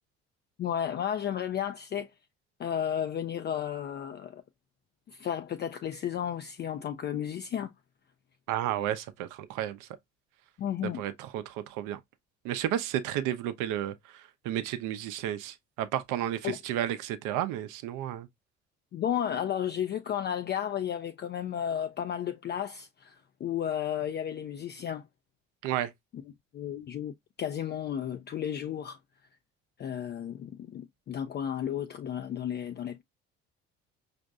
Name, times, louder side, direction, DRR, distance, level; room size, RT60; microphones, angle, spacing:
voice 1, 0.6-2.1 2.6-4.4 5.1-7.7 10.6-11.0 16.4-16.6 18.9-25.0 26.1-26.2 26.5-29.0 29.8-33.0, left 9 dB, 35° left, 0.4 m, -33 dB
voice 2, 8.5-9.9 10.8-12.0 12.4-18.3 25.6-25.9, right 11 dB, 65° right, 0.7 m, -32 dB
5.1 x 2.6 x 2.3 m
hypercardioid pair, 60°, 32 cm